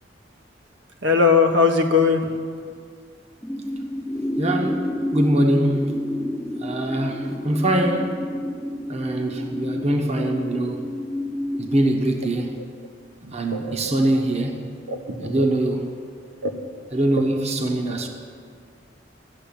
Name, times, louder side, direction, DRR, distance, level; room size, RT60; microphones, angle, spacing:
voice 1, 1.0-2.2 13.2-13.9 14.9-15.5 16.4-16.5, left 5 dB, 80° right, 4 dB, 1.4 m, -20 dB
sound 1, 3.4-12.0, left 1 dB, 5° left, 0.5 m, -29 dB
voice 2, 4.4-6.0 6.6-8.2 8.9-10.9 11.6-12.6 13.3-14.7 15.2-15.9 16.9-18.1, right 1 dB, 35° right, 3 dB, 1.1 m, -23 dB
13.5 x 7.3 x 8.7 m, 2.1 s
head